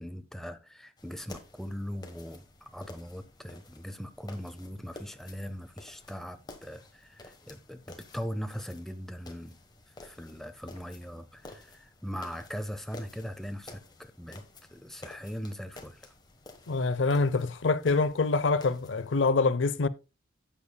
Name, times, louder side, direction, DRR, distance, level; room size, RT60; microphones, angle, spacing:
voice 1, 0.0-9.6 10.0-14.4 14.7-16.1, equal, ahead, 0.6 m, -40 dB
sound 1, 1.0-19.3, left 2 dB, 20° left, 1.2 m, -52 dB
voice 2, 16.7-19.9, left 3 dB, 75° left, 0.6 m, -25 dB
12.5 x 8.3 x 2.3 m
head